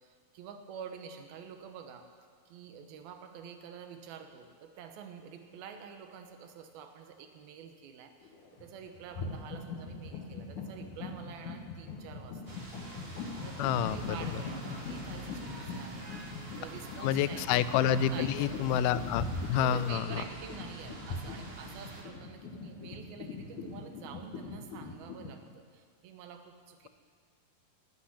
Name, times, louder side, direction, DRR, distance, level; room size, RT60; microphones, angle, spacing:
voice 1, 0.0-2.1 2.5-17.5 18.1-18.9 19.5-26.9, right 7 dB, 85° right, 6 dB, 2.9 m, -48 dB
sound 1, 8.2-8.7 9.0-25.3, left 4 dB, 65° left, 2.5 m, -41 dB
sound 2, 12.5-22.0, right 2 dB, 70° right, 0.5 m, -46 dB
voice 2, 13.6-14.4 17.0-20.2, left 9 dB, 85° left, 15 dB, 2.4 m, -29 dB
12.0 x 8.5 x 9.8 m, 2.1 s
omnidirectional pair, 4.3 m